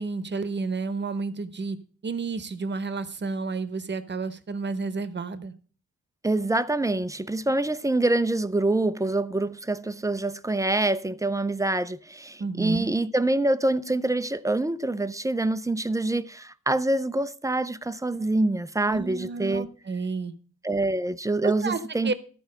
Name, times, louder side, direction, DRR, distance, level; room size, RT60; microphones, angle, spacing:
voice 1, 0.0-1.8 2.0-5.5 12.4-12.9 18.8-20.3 21.4-22.1, right 4 dB, 35° right, 0.9 m, -31 dB
voice 2, 6.2-19.7 20.6-22.1, right 2 dB, 10° right, 0.3 m, -25 dB
13.0 x 4.6 x 6.5 m
wide cardioid pair, 120°, 31 cm